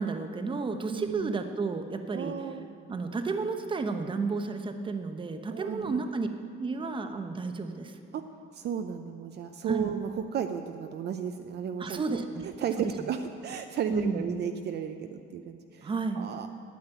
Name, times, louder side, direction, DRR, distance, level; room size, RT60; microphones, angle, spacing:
voice 1, 0.0-2.3 2.9-6.3 6.6-7.9 9.7-9.9 11.8-12.5 12.8-12.9 13.9-14.2 15.8-16.3, right 4 dB, 25° right, 7 dB, 0.9 m, -32 dB
voice 2, 0.9-1.3 2.1-2.6 5.5-6.0 8.1-8.2 8.5-15.9 16.2-16.5, right 8 dB, 55° right, 6 dB, 0.6 m, -34 dB
9.1 x 8.6 x 9.1 m, 2.6 s
cardioid pair, 130°, 21 cm